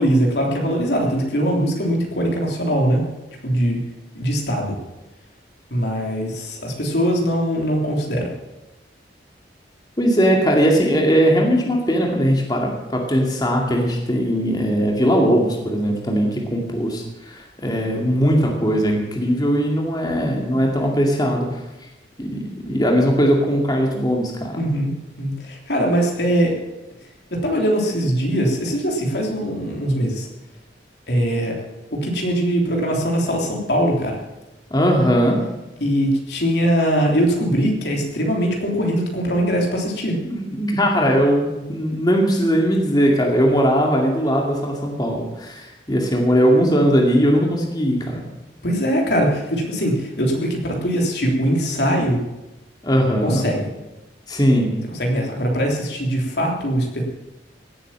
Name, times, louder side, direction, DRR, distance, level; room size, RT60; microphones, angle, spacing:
voice 1, 0.0-3.0 3.4-3.8 4.2-4.8 5.7-8.3 24.6-24.9 25.2-26.5 27.3-30.3 31.1-31.6 31.9-34.2 35.8-40.2 48.6-52.2 53.2-53.7 54.9-57.0, equal, 65° left, 0 dB, 3.5 m, -21 dB
voice 2, 10.0-21.5 22.2-24.6 34.7-35.4 40.2-48.2 52.8-53.5 54.3-54.7, equal, 20° left, 0 dB, 2.3 m, -19 dB
17.0 x 8.5 x 7.4 m, 0.99 s
head